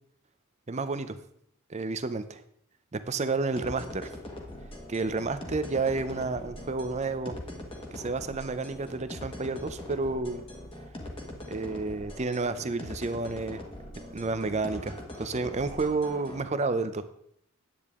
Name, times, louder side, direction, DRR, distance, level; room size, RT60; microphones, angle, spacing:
voice 1, 0.7-1.2 1.7-2.2 2.9-4.1 4.9-7.4 7.9-10.4 11.5-13.6 14.1-17.0, right 3 dB, 30° right, 11 dB, 0.6 m, -30 dB
sound 1, 3.6-16.4, left 1 dB, 25° left, 1.4 m, -42 dB
10.5 x 8.6 x 3.6 m, 0.70 s
head